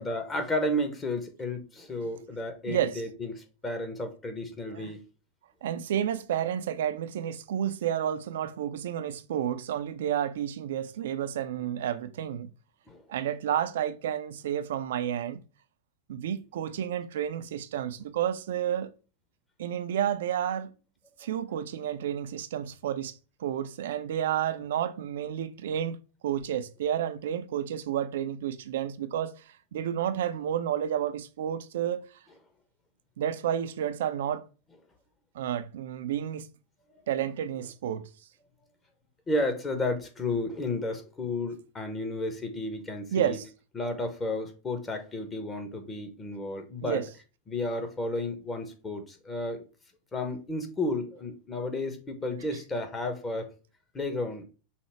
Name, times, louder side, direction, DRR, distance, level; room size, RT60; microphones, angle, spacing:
voice 1, 0.0-5.0 12.9-13.0 39.3-43.4 43.7-47.0 47.5-49.6 50.1-53.5 53.9-54.4, left 2 dB, 25° left, 1.1 m, -32 dB
voice 2, 2.7-3.0 4.7-4.9 5.6-12.5 13.1-15.4 16.1-18.9 19.6-20.7 21.2-23.1 23.4-26.0 26.2-29.3 29.7-32.1 33.2-34.4 35.3-36.5 37.1-38.1 43.1-43.5 46.8-47.1, right 10 dB, 70° right, 0.4 m, -30 dB
5.6 x 2.1 x 4.5 m
hypercardioid pair, 90°, 0 cm